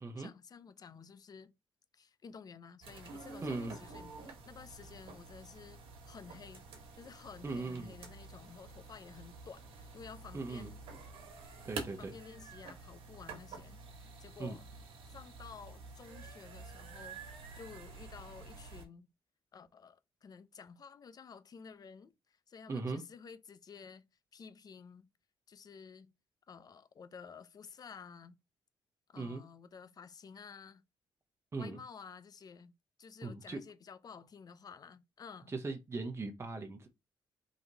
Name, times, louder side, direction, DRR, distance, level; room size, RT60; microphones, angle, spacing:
voice 1, 0.2-1.5 1.9-10.8 11.4-11.7 12.0-13.8 14.2-14.6 15.1-17.2 17.5-19.1 19.5-24.1 24.3-25.1 25.5-26.1 26.5-28.4 29.1-30.8 31.6-32.7 33.0-35.5, left 6 dB, 45° left, 0.5 m, -52 dB
sound 1, 2.8-18.8, right 4 dB, 85° right, 1.2 m, -49 dB
voice 2, 3.4-3.8 7.4-7.9 10.3-10.7 11.6-12.1 14.4-14.6 22.7-23.0 29.1-29.4 31.5-31.8 33.2-33.6 35.5-36.9, right 3 dB, 30° right, 0.9 m, -39 dB
4.0 x 2.9 x 4.0 m
cardioid pair, 85°, 9 cm